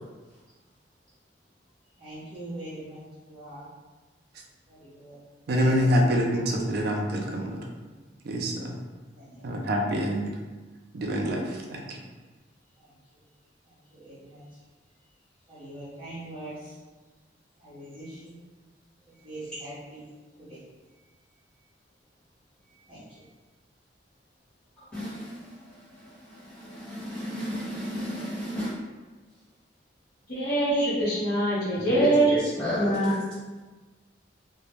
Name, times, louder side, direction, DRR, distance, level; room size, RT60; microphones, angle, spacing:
voice 1, 2.0-3.0 3.3-3.7 4.7-5.2 7.9-8.0 9.1-9.6 12.8-12.9 13.9-14.4 15.5-16.8 17.6-18.3 19.2-20.0 20.4-20.6 22.9-23.2, right 1 dB, 30° right, -13 dB, 0.7 m, -42 dB
voice 2, 5.5-7.6 8.2-8.7 9.4-10.3 10.9-12.0, equal, 60° right, 1 dB, 0.4 m, -26 dB
voice 3, 24.8-25.6 25.9-28.8 31.9-33.1, equal, 5° left, -12 dB, 1.0 m, -32 dB
voice 4, 30.3-32.3 32.8-33.2, right 2 dB, 60° left, -11 dB, 0.9 m, -24 dB
2.2 x 2.0 x 2.9 m, 1.3 s
head